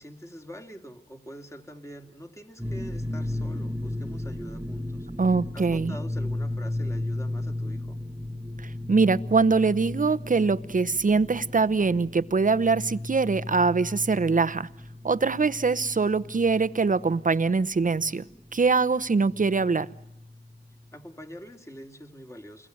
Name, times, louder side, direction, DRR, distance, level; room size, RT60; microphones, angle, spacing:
voice 1, 0.0-5.1 5.5-8.0 20.9-22.7, equal, 15° left, 2.6 m, -44 dB
sound 1, 2.6-20.9, left 1 dB, 10° right, 1.4 m, -35 dB
voice 2, 5.2-5.9 8.9-14.7 15.0-18.2 18.5-19.9, right 4 dB, 45° right, 0.9 m, -23 dB
28.5 x 21.5 x 7.9 m
cardioid pair, 50°, 19 cm